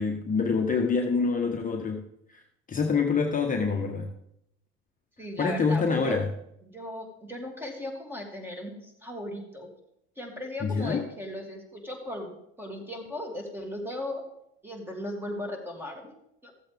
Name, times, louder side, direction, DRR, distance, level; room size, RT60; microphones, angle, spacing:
voice 1, 0.0-2.1 2.7-4.1 5.4-6.3 10.6-11.0, left 4 dB, 25° left, 2 dB, 1.1 m, -26 dB
voice 2, 5.2-6.2 6.6-9.7 10.2-14.2 14.6-16.1 16.4-16.5, left 1 dB, 5° right, 1 dB, 2.7 m, -37 dB
14.5 x 7.7 x 3.5 m, 0.78 s
supercardioid pair, 85°, 30 cm